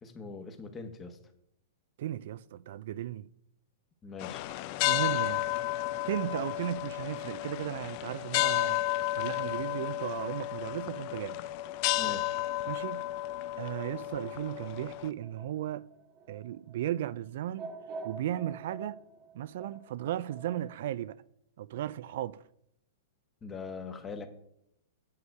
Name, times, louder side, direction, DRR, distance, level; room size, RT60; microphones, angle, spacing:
voice 1, 0.0-1.2 4.0-4.4 12.0-12.3 23.4-24.3, left 4 dB, 15° left, 1.1 m, -42 dB
voice 2, 2.0-3.3 4.8-5.4 6.1-8.8 9.1-11.4 12.7-13.1 13.6-15.9 16.3-17.8 18.0-19.0 19.3-21.2 21.6-22.4, right 12 dB, 60° right, 0.3 m, -35 dB
sound 1, 4.2-15.1, left 15 dB, 40° left, 0.4 m, -32 dB
sound 2, 15.2-20.8, right 4 dB, 30° right, 0.7 m, -46 dB
8.5 x 8.0 x 4.7 m
hypercardioid pair, 150°, 0 cm